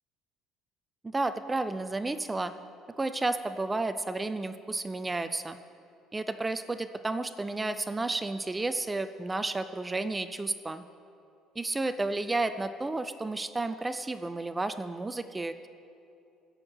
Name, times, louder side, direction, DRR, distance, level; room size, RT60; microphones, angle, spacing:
voice 1, 1.0-2.5 3.0-5.6 6.1-10.8 11.6-15.7, right 2 dB, 10° right, 10 dB, 0.4 m, -32 dB
16.0 x 6.4 x 7.7 m, 2.8 s
cardioid pair, 160°, 0 cm